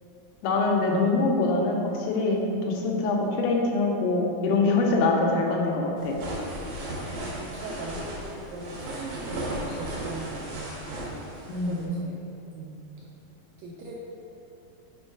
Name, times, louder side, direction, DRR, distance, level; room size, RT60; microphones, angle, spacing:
voice 1, 0.4-6.2 11.5-11.8, left 3 dB, 90° left, -1 dB, 2.8 m, -24 dB
sound 1, 6.0-11.9, right 1 dB, 65° right, 2.2 m, -35 dB
voice 2, 7.0-10.8 11.6-12.3 12.5-12.8 13.6-13.9, right 2 dB, 85° right, -3 dB, 2.0 m, -40 dB
6.1 x 4.5 x 4.6 m, 2.7 s
omnidirectional pair, 4.5 m